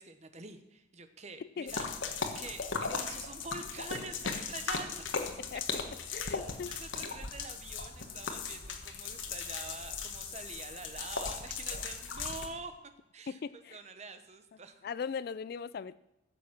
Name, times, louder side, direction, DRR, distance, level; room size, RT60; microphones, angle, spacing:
voice 1, 0.0-1.9 2.2-5.1 5.7-5.8 6.2-12.7 13.1-13.4 13.7-14.9, right 4 dB, 35° right, 9 dB, 0.9 m, -46 dB
voice 2, 1.4-1.7 5.4-5.6 6.1-6.8 13.3-13.8 14.8-16.0, left 6 dB, 50° left, 17 dB, 0.3 m, -39 dB
sound 1, 1.7-12.5, left 5 dB, 75° left, 1.4 m, -38 dB
15.0 x 7.1 x 5.9 m, 0.93 s
head